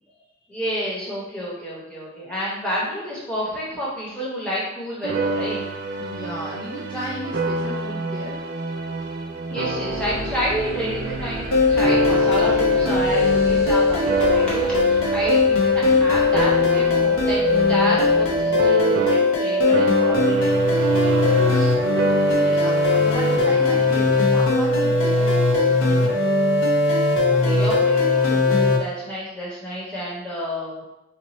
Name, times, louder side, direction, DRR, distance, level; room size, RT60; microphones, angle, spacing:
voice 1, 0.5-5.6 9.5-21.8 22.2-22.6 27.2-30.8, equal, 5° left, -8 dB, 0.9 m, -30 dB
sound 1, 5.0-19.5 19.7-24.2, right 3 dB, 50° right, 0.3 m, -28 dB
voice 2, 6.0-8.4 22.4-26.2, equal, 25° left, -6 dB, 0.4 m, -34 dB
sound 2, 9.9-18.7, equal, 25° right, 1.2 m, -37 dB
sound 3, 11.5-28.8, left 3 dB, 85° left, 0.5 m, -19 dB
2.9 x 2.1 x 4.1 m, 0.94 s
head